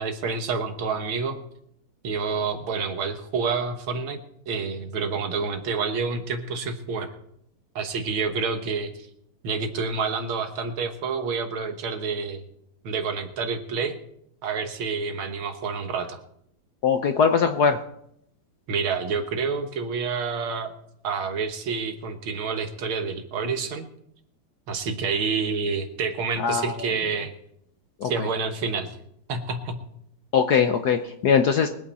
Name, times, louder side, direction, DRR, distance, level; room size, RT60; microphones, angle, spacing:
voice 1, 0.0-1.4 2.0-4.2 4.5-7.1 7.8-9.1 9.4-12.4 12.8-14.0 14.4-16.2 18.7-20.8 21.0-23.9 24.7-27.3 28.0-29.0 29.3-29.8, right 5 dB, 70° right, 6 dB, 2.1 m, -28 dB
voice 2, 16.8-17.8 26.4-26.7 28.0-28.3 30.3-31.7, left 6 dB, 60° left, 7 dB, 1.1 m, -21 dB
23.0 x 8.8 x 4.2 m, 0.73 s
omnidirectional pair, 2.4 m